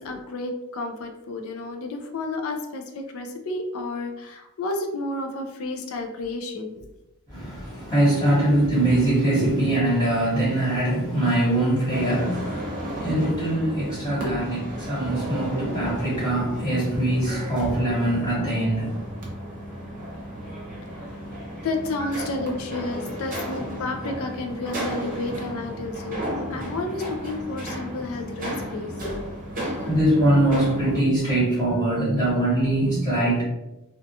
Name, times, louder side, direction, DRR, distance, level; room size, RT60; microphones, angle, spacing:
voice 1, 0.0-6.9 14.2-14.4 21.6-26.2 26.5-29.3, left 2 dB, 65° left, 4 dB, 0.4 m, -31 dB
voice 2, 7.3-19.0 22.1-22.3 29.9-33.4, right 1 dB, 15° left, -8 dB, 0.9 m, -22 dB
sound 1, 11.9-31.0, equal, 40° right, 0.7 m, -34 dB
2.5 x 2.3 x 2.6 m, 0.96 s
head